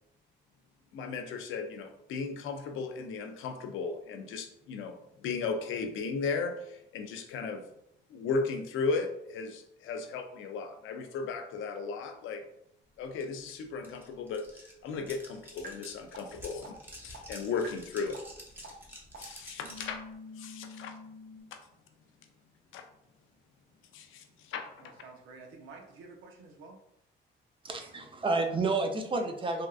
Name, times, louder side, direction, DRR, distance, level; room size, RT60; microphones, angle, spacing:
voice 1, 0.9-7.6 8.1-12.4 13.0-16.7 17.0-18.2 18.9-20.0 20.4-21.0 21.5-21.6 22.7-22.9 23.9-24.9, left 4 dB, 80° left, 6 dB, 0.5 m, -36 dB
sound 1, 13.2-13.3 13.5-20.0, equal, 10° right, 0.9 m, -49 dB
sound 2, 15.6-15.7 16.1-16.2 16.6-16.7 17.1-17.2 17.6-17.7 18.1-18.2 18.6-18.7 19.1-19.2 19.6-21.4, left 1 dB, 50° right, 0.8 m, -46 dB
voice 2, 24.8-26.8, right 3 dB, 85° right, 2 dB, 0.7 m, -50 dB
voice 3, 27.6-29.7, right 3 dB, 25° right, 4 dB, 0.5 m, -30 dB
3.5 x 2.4 x 2.3 m, 0.77 s
cardioid pair, 90°, 20 cm